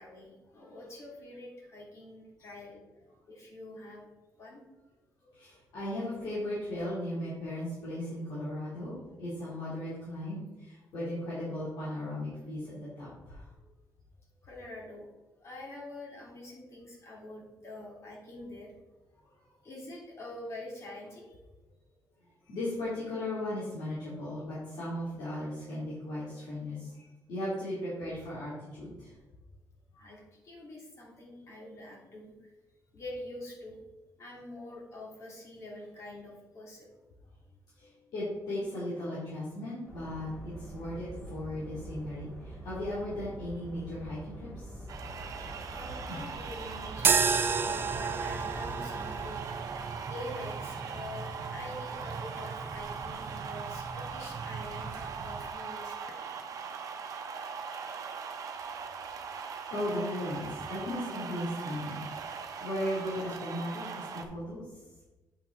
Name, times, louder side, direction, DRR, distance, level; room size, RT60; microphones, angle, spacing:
voice 1, 0.0-2.8 3.3-4.1 4.4-4.6 14.4-15.1 15.4-18.7 19.6-21.4 30.0-32.5 32.9-33.8 34.2-36.9 45.7-49.4 50.0-56.4, left 1 dB, 45° left, -2 dB, 2.6 m, -45 dB
voice 2, 5.3-13.5 22.4-29.1 29.9-30.1 37.8-44.8 46.1-46.2 59.7-64.6, left 1 dB, 85° left, -9 dB, 2.9 m, -37 dB
sound 1, 39.8-49.4, right 1 dB, 15° left, 2.5 m, -45 dB
sound 2, 44.9-64.2, right 6 dB, 55° right, 0.9 m, -40 dB
sound 3, 47.0-55.5, right 5 dB, 35° right, 0.5 m, -33 dB
8.1 x 5.7 x 3.9 m, 1.1 s
cardioid pair, 130°, 7 cm